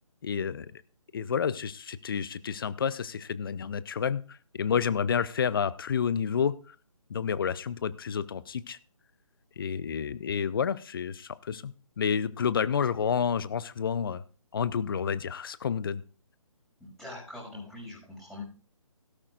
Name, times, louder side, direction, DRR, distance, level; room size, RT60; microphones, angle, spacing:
voice 1, 0.2-0.8 1.1-6.7 7.1-8.8 9.6-14.2 14.5-16.0, left 7 dB, 40° left, 17 dB, 0.6 m, -30 dB
voice 2, 16.8-18.4, left 2 dB, ahead, -6 dB, 6.1 m, -43 dB
16.5 x 13.5 x 2.5 m, 0.40 s
figure-of-eight pair, 150°, 18 cm